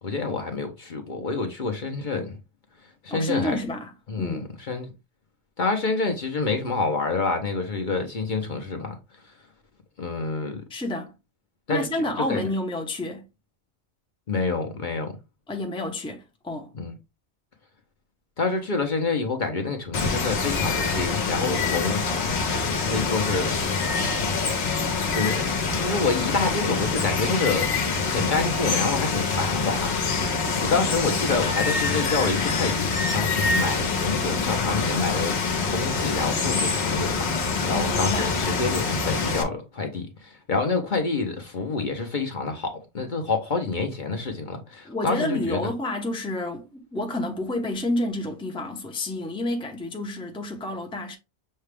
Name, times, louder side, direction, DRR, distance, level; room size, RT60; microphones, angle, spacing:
voice 1, 0.0-2.4 3.0-3.6 4.1-4.9 5.6-8.9 10.0-10.6 11.7-12.0 12.3-12.5 14.3-15.1 16.7-16.9 18.4-22.0 22.8-23.5 25.1-27.7 28.0-30.0 30.6-35.4 35.7-45.6, left 3 dB, 50° left, 0.8 m, -27 dB
voice 2, 3.1-3.9 4.2-4.5 10.7-11.1 11.7-13.2 15.5-16.7 30.7-30.9 37.7-38.3 44.8-51.2, left 1 dB, 5° left, 0.7 m, -29 dB
Water, 19.9-39.4, left 4 dB, 70° left, 1.2 m, -25 dB
6.5 x 2.3 x 3.3 m
omnidirectional pair, 1.2 m